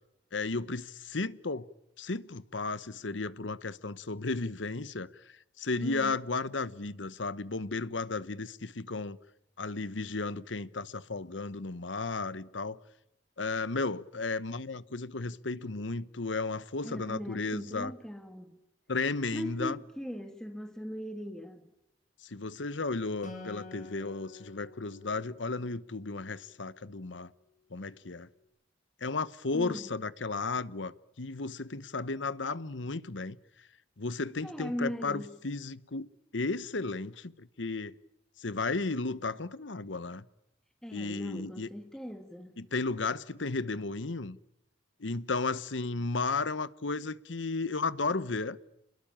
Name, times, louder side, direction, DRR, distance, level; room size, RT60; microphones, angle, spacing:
voice 1, 0.3-1.7 2.0-5.1 5.6-9.2 9.6-12.8 13.4-17.9 18.9-19.8 22.2-27.3 27.7-28.3 29.0-33.4 34.0-36.1 36.3-38.0 38.4-40.3 40.9-41.7 42.6-44.4 45.0-48.6, left 3 dB, 75° left, 1.1 m, -34 dB
voice 2, 5.8-6.2 16.8-18.6 19.3-21.6 29.5-29.9 34.4-35.4 40.8-42.6, equal, 5° left, 1.8 m, -39 dB
Acoustic guitar, 23.2-26.7, left 2 dB, 45° left, 7.1 m, -49 dB
29.5 x 21.5 x 9.0 m
head